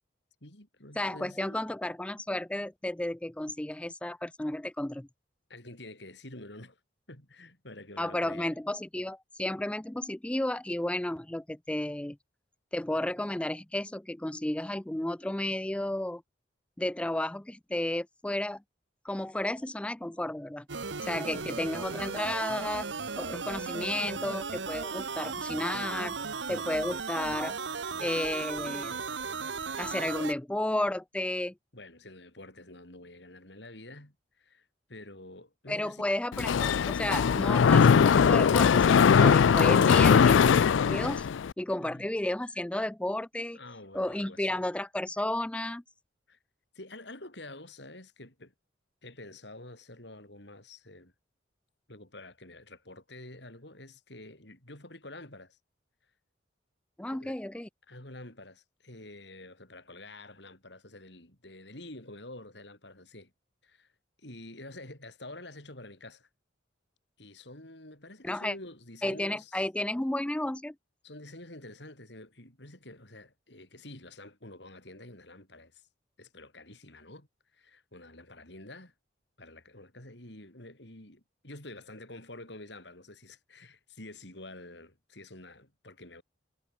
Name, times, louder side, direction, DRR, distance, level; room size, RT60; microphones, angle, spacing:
voice 1, 0.4-1.6 5.5-6.8 7.1-8.6 21.2-21.5 31.7-36.0 41.8-42.1 43.5-44.7 46.3-46.4 46.7-48.5 49.0-51.1 51.9-55.6 57.1-57.4 57.9-63.3 63.6-63.9 64.2-66.3 67.2-69.5 71.0-75.8 76.2-77.3 77.5-78.9 79.4-86.2, left 2 dB, 65° left, 5.8 m, -48 dB
voice 2, 1.0-5.1 8.0-12.2 12.7-16.2 16.8-18.6 19.0-20.7 21.0-22.9 23.2-26.2 26.5-27.5 28.0-29.0 29.8-31.5 35.7-41.3 41.6-43.6 43.9-45.8 57.0-57.7 68.2-68.5 69.0-70.8, left 1 dB, 5° left, 0.4 m, -32 dB
sound 1, 20.7-30.3, right 5 dB, 70° right, 1.1 m, -36 dB
Mechanisms, 36.3-41.5, left 6 dB, 85° left, 0.4 m, -21 dB
head